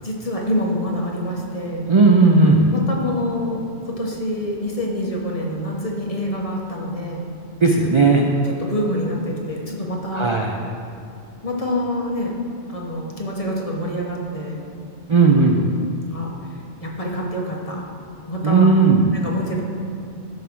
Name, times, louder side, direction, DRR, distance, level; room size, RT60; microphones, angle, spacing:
voice 1, 0.0-1.9 2.7-7.2 8.4-10.3 11.4-12.4 12.7-14.6 16.1-16.3 16.8-17.8 18.3-18.7 19.2-19.6, left 1 dB, 30° left, -2 dB, 1.0 m, -26 dB
voice 2, 1.9-2.7 7.6-8.3 10.1-10.5 15.1-15.7 18.4-19.1, right 3 dB, 50° right, 1 dB, 0.3 m, -15 dB
11.0 x 3.7 x 6.0 m, 2.6 s
omnidirectional pair, 1.2 m